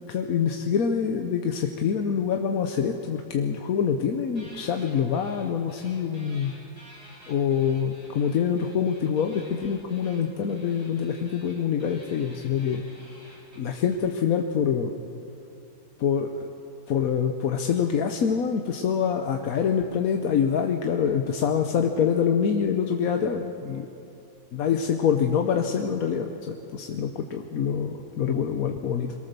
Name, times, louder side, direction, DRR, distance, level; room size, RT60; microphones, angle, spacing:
voice 1, 0.1-6.5 7.3-12.8 13.6-14.9 16.0-16.5 16.9-23.9 24.5-29.1, left 7 dB, 60° left, 4 dB, 1.2 m, -25 dB
sound 1, 4.4-5.4 5.7-13.9, equal, 20° right, 6.3 m, -51 dB
22.5 x 17.5 x 6.8 m, 2.9 s
omnidirectional pair, 1.8 m